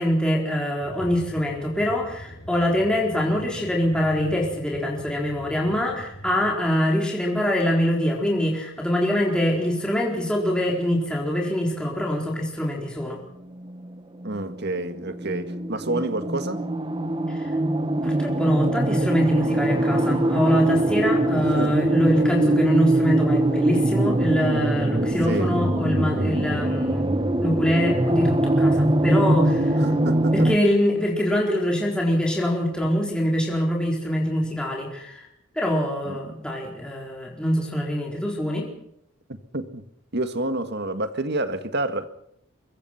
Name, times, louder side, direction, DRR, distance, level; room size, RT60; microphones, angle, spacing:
voice 1, 0.0-13.2 17.3-17.5 18.0-27.1 27.4-29.8 30.3-35.3 35.6-38.7, equal, 5° left, 4.3 m, -24 dB
sound 1, 0.8-6.5, equal, 55° left, 5.7 m, -42 dB
sound 2, 13.6-30.6, right 1 dB, 25° right, 1.4 m, -22 dB
voice 2, 14.2-16.6 21.4-21.7 25.3-25.6 29.8-30.3 36.0-36.2 39.5-39.8 40.1-42.1, right 2 dB, 55° right, 1.9 m, -28 dB
24.0 x 22.5 x 5.9 m
head